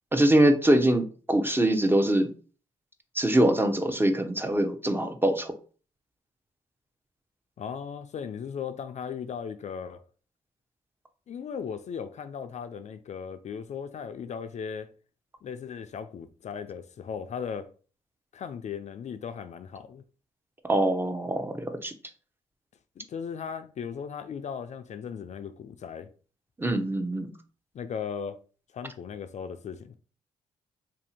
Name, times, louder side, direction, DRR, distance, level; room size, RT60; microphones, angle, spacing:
voice 1, 0.1-2.3 3.1-5.5 20.6-21.9 26.6-27.3, right 1 dB, 15° right, 0.7 m, -23 dB
voice 2, 7.6-10.0 11.3-14.9 15.4-17.7 18.3-20.0 23.0-26.1 27.7-28.4 28.7-29.9, left 7 dB, 50° left, 0.4 m, -37 dB
2.7 x 2.6 x 4.2 m
supercardioid pair, 55°, 15 cm